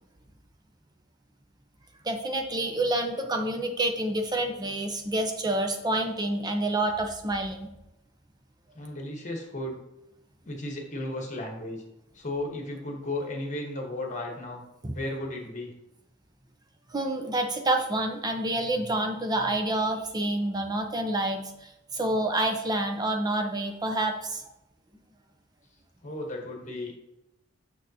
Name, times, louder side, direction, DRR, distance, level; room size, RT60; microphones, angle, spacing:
voice 1, 2.0-7.7 14.8-15.0 16.9-24.4, right 1 dB, 20° right, 5 dB, 0.7 m, -28 dB
voice 2, 8.7-9.8 10.4-11.8 12.1-14.6 14.9-15.7 26.0-27.0, left 1 dB, 40° left, 1 dB, 1.3 m, -34 dB
6.5 x 6.2 x 2.8 m, 0.90 s
head